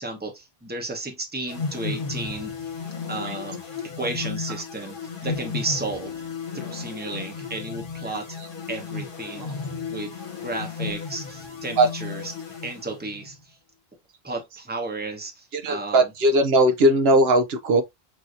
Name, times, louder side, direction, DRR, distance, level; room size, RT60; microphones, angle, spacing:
voice 1, 0.0-2.7 3.1-6.1 6.5-8.4 8.7-10.1 10.4-12.3 12.6-13.6 14.2-16.0, right 2 dB, 10° right, 0.9 m, -33 dB
sound 1, 1.5-13.3, left 5 dB, 60° left, 1.2 m, -34 dB
voice 2, 15.5-17.8, right 1 dB, 75° right, 0.9 m, -19 dB
6.2 x 2.7 x 2.5 m
omnidirectional pair, 1.0 m